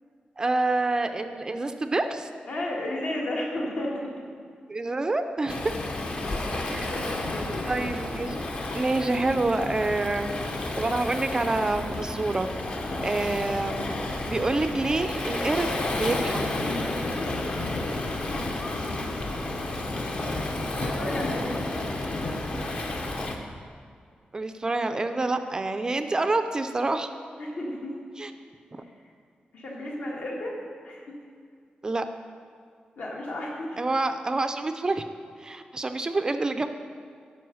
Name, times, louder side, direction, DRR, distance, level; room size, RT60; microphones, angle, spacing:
voice 1, 0.4-2.3 4.7-5.6 6.7-7.1 7.7-8.4 8.7-10.3 10.8-12.5 13.0-13.9 14.3-15.7 15.9-16.4 24.3-27.1 28.2-28.3 28.7-28.8 31.8-32.1 33.8-35.0 35.4-36.7, right 2 dB, 25° right, 8 dB, 0.4 m, -27 dB
voice 2, 2.5-4.1 6.3-7.5 20.7-21.7 27.4-27.9 29.5-30.6 30.8-31.0 33.0-33.8, left 1 dB, 65° left, -2 dB, 1.7 m, -33 dB
Waves surf, 5.5-23.4, left 2 dB, 40° left, 0.8 m, -31 dB
9.3 x 5.5 x 6.3 m, 2.2 s
wide cardioid pair, 170°, 3 cm